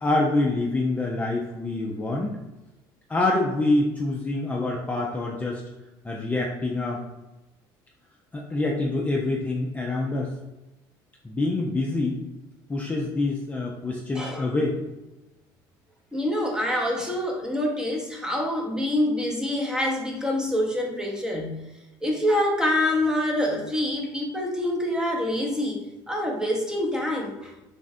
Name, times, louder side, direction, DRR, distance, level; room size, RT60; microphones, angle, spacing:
voice 1, 0.0-2.4 3.1-5.6 6.0-7.0 8.3-10.3 11.2-12.2 12.7-14.8, left 2 dB, 15° left, -1 dB, 0.5 m, -26 dB
voice 2, 14.1-14.5 16.1-21.6 22.0-27.5, left 1 dB, 5° right, 0 dB, 0.8 m, -26 dB
3.4 x 2.4 x 4.1 m, 1.0 s
supercardioid pair, 95°, 10 cm